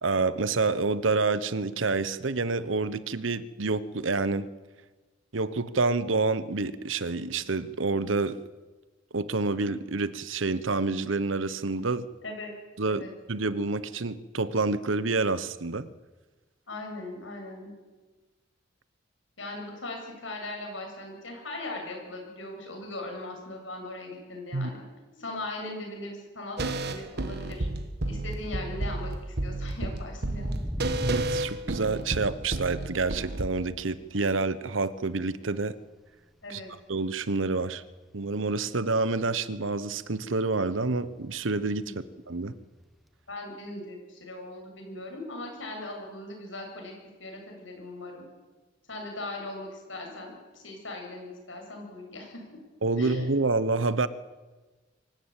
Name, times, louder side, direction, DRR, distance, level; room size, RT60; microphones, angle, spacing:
voice 1, 0.0-4.5 5.3-8.4 9.1-12.1 12.8-15.9 24.5-24.7 31.0-35.8 36.5-36.6 36.9-37.8 38.1-41.9 42.3-42.5 52.8-54.1, right 3 dB, 90° right, 15 dB, 1.0 m, -28 dB
voice 2, 16.7-17.7 19.4-24.8 25.2-27.7 28.0-29.1 29.4-30.6 36.4-36.7 41.8-42.0 43.3-46.9 47.2-48.2 48.9-52.6 52.9-53.3, left 2 dB, 75° left, 1 dB, 7.7 m, -39 dB
sound 1, 26.6-33.5, right 2 dB, 60° right, 1.4 m, -31 dB
sound 2, 30.4-33.7 34.1-36.3 36.6-37.0 37.3-39.2 39.5-39.6 39.9-40.3 40.7-40.8 43.0-43.1, equal, ahead, 1.1 m, -38 dB
24.5 x 15.0 x 8.9 m, 1.3 s
head